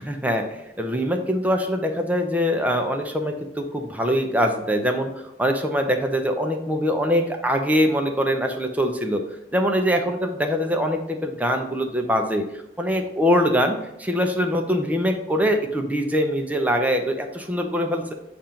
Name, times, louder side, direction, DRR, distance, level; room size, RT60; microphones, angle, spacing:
voice 1, 0.1-5.1 5.4-9.2 9.5-12.4 12.8-18.1, equal, 10° right, 4 dB, 0.6 m, -23 dB
7.1 x 2.5 x 5.7 m, 0.85 s
head